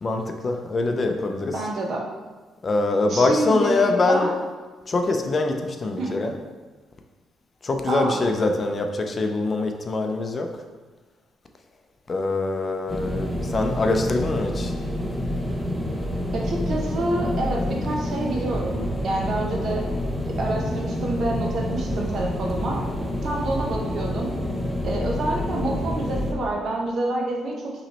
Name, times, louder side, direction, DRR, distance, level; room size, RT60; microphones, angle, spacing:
voice 1, 0.0-1.7 2.6-4.3 4.9-6.4 7.6-10.6 12.1-14.7, left 2 dB, 35° left, 4 dB, 0.5 m, -24 dB
voice 2, 1.5-2.0 3.1-4.4 6.0-6.2 7.9-8.2 16.3-19.8 20.4-22.8 23.2-24.3 24.8-27.7, right 2 dB, 60° right, 0 dB, 0.9 m, -27 dB
sound 1, 12.9-26.3, left 1 dB, 10° right, 0.7 m, -28 dB
5.7 x 3.1 x 2.9 m, 1.3 s
cardioid pair, 90°, 0 cm